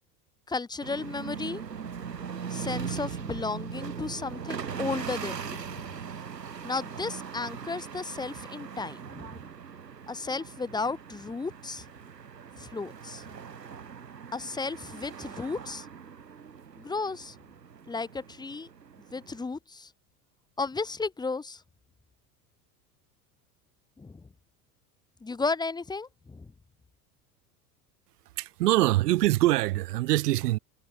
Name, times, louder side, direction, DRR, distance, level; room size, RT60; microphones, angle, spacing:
voice 1, 0.5-1.6 2.5-5.8 6.6-9.5 10.1-11.8 12.6-13.2 14.3-15.8 16.8-17.3 17.9-18.7 19.1-19.9 20.6-21.6 24.0-24.2 25.2-26.5, left 4 dB, 10° left, 0.9 m, -34 dB
sound 1, 0.8-19.4, right 7 dB, 90° right, 1.5 m, -40 dB
voice 2, 28.4-30.6, right 17 dB, 70° right, 0.7 m, -24 dB
figure-of-eight pair, 75°, 48 cm